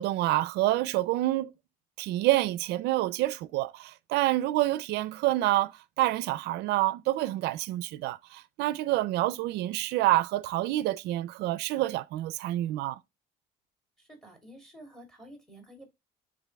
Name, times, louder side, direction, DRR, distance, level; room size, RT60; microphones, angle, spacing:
voice 1, 0.0-1.5 2.0-5.7 6.0-13.0, right 16 dB, 80° right, 0.4 m, -27 dB
voice 2, 14.0-15.9, right 1 dB, ahead, 2.9 m, -50 dB
11.0 x 3.8 x 2.2 m
cardioid pair, 110°, 17 cm